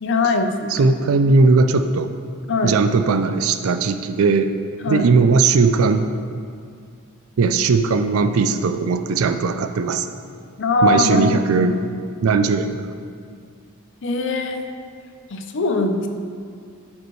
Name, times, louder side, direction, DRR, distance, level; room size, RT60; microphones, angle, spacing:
voice 1, 0.0-0.7 1.3-1.4 2.5-2.8 4.8-5.0 10.6-11.7 14.0-14.7 15.3-16.1, left 3 dB, 55° left, 5 dB, 0.6 m, -21 dB
voice 2, 0.7-2.1 2.6-4.5 4.9-6.1 7.4-10.1 10.8-11.8 12.2-12.8, right 4 dB, 70° right, 9 dB, 0.4 m, -18 dB
10.5 x 5.2 x 3.1 m, 2.2 s
head